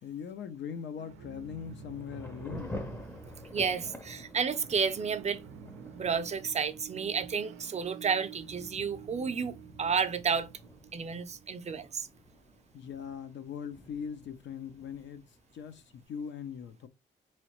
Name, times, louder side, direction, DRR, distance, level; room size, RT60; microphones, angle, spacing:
voice 1, 0.0-2.9 12.7-16.9, left 7 dB, 65° left, 0.6 m, -41 dB
sound 1, 1.0-13.5, right 7 dB, 85° right, 0.5 m, -50 dB
Thunder / Rain, 1.6-16.0, left 1 dB, 10° left, 0.6 m, -49 dB
voice 2, 3.5-5.4 5.9-10.5 10.9-12.1, right 6 dB, 35° right, 0.5 m, -31 dB
3.8 x 3.1 x 3.0 m
cardioid pair, 90°, 20 cm